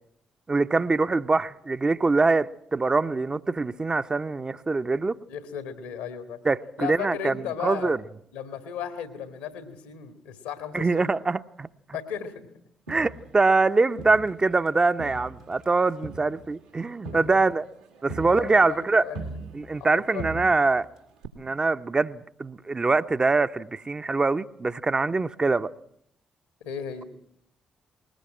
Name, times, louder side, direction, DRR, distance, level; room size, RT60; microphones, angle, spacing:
voice 1, 0.5-5.2 6.4-7.4 7.6-8.0 10.7-11.7 12.9-17.7 18.0-19.1 19.5-20.9 21.4-25.7, right 3 dB, 30° right, 0.8 m, -24 dB
voice 2, 5.3-6.4 6.8-7.9 8.3-11.1 11.9-12.4 17.1-17.2 18.3-19.2 20.1-20.3 26.6-27.0, left 8 dB, 75° left, 1.9 m, -35 dB
Crowd, 12.9-14.7 15.0-19.9 20.2-20.9 21.2-21.3, right 2 dB, 90° right, 2.1 m, -40 dB
20.5 x 19.5 x 7.6 m
figure-of-eight pair, 40°, 3 cm